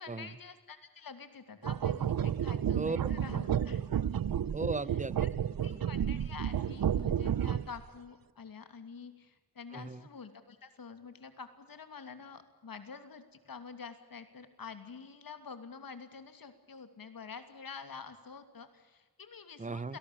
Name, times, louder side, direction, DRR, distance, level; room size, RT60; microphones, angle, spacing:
voice 1, 0.0-3.8 5.2-5.3 5.6-20.0, left 5 dB, 70° left, 9 dB, 2.8 m, -48 dB
sound 1, 1.6-7.8, right 9 dB, 75° right, 0.8 m, -31 dB
voice 2, 4.5-5.9 9.7-10.1 19.6-20.0, right 3 dB, 20° right, 18 dB, 1.0 m, -37 dB
28.5 x 18.5 x 8.7 m, 1.3 s
wide cardioid pair, 80°, 35 cm